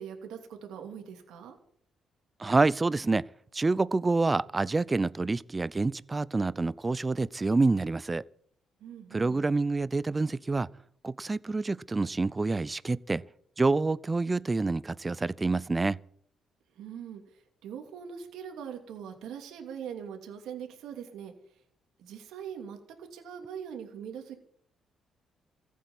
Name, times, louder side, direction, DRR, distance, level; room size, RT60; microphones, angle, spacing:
voice 1, 0.0-1.6 8.8-9.5 16.7-21.3 22.0-24.4, right 8 dB, 85° right, 2.7 m, -42 dB
voice 2, 2.4-3.2 3.5-8.2 9.1-10.7 11.0-13.2 13.6-16.0, right 3 dB, 25° right, 0.6 m, -27 dB
15.0 x 8.4 x 9.7 m
cardioid pair, 90°, 0 cm